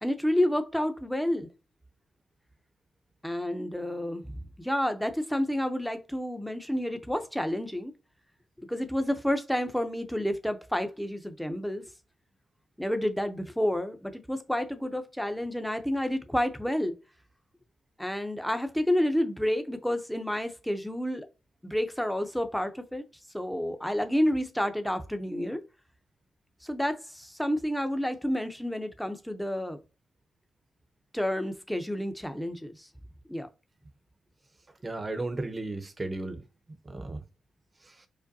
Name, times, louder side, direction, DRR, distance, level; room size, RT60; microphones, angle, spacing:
voice 1, 0.0-1.5 3.2-7.9 8.7-11.8 12.8-16.9 18.0-21.3 21.6-23.0 23.3-25.6 26.6-29.8 31.1-32.9 33.3-33.5, left 1 dB, 5° left, 0.8 m, -30 dB
voice 2, 34.8-36.4 36.8-37.2 37.8-38.1, right 2 dB, 30° right, 0.8 m, -35 dB
5.0 x 2.2 x 2.8 m
cardioid pair, 55°, 0 cm